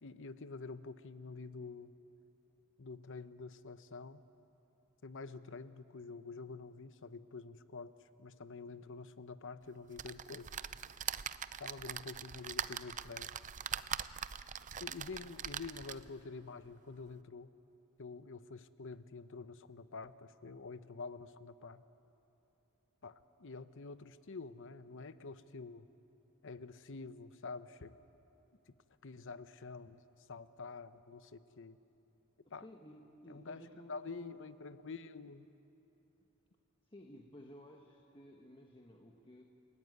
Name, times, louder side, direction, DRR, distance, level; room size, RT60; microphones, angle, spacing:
voice 1, 0.0-1.9 2.8-4.2 5.0-7.9 8.2-10.5 11.6-13.3 14.8-17.5 18.0-21.8 23.0-25.9 26.4-27.9 28.7-28.8 29.0-30.0 30.3-31.8 32.5-32.6 33.3-33.6 33.9-35.5, left 4 dB, 60° left, 12 dB, 0.8 m, -47 dB
sound 1, 10.0-16.2 16.7-16.8 17.1-17.2, right 8 dB, 35° right, 0.5 m, -42 dB
voice 2, 32.6-34.4 36.9-39.4, equal, 25° left, 1 dB, 1.3 m, -55 dB
29.5 x 16.5 x 9.5 m, 3.0 s
head